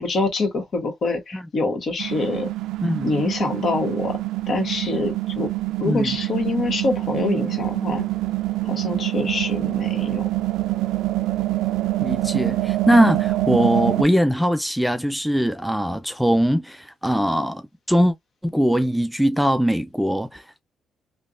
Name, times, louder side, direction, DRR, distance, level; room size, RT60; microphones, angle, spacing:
voice 1, 0.0-2.5 3.0-4.2 4.5-5.5 5.8-8.0 8.6-10.2, left 3 dB, 55° left, 1.3 m, -25 dB
sound 1, 2.0-14.0, right 17 dB, 85° right, 0.4 m, -25 dB
voice 2, 2.8-3.1 5.8-6.1 12.0-18.1 18.4-20.6, equal, ahead, 0.3 m, -21 dB
3.4 x 2.2 x 2.4 m
cardioid pair, 90°, 0 cm